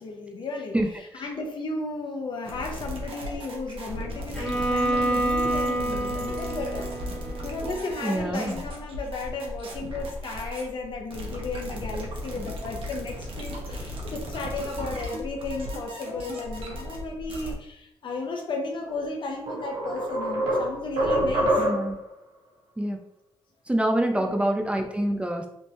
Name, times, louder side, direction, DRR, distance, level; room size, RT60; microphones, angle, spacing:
voice 1, 0.0-6.9 7.4-21.7 24.1-24.4, left 3 dB, 55° left, 2 dB, 0.8 m, -34 dB
sound 1, 2.4-17.6, equal, 65° right, 1.0 m, -36 dB
Bowed string instrument, 4.3-8.4, right 1 dB, 10° left, 1.1 m, -28 dB
voice 2, 8.0-8.6 21.6-22.0 22.8-23.0 23.7-25.5, right 1 dB, 10° right, 3 dB, 0.5 m, -26 dB
sound 2, 18.9-19.0 19.5-22.0, equal, 85° right, 1.4 m, -25 dB
3.5 x 2.7 x 3.1 m, 0.78 s
cardioid pair, 70°, 10 cm